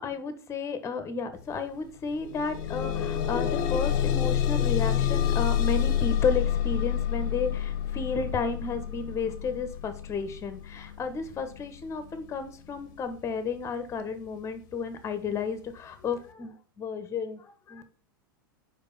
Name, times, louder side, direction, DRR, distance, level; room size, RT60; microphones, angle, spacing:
voice 1, 0.0-17.8, left 5 dB, 25° left, 10 dB, 1.2 m, -32 dB
sound 1, 1.4-1.5 1.9-12.9 13.7-13.8 14.3-14.4, left 10 dB, 55° left, 0.9 m, -28 dB
5.2 x 5.0 x 5.6 m, 0.40 s
figure-of-eight pair, 95°, 12 cm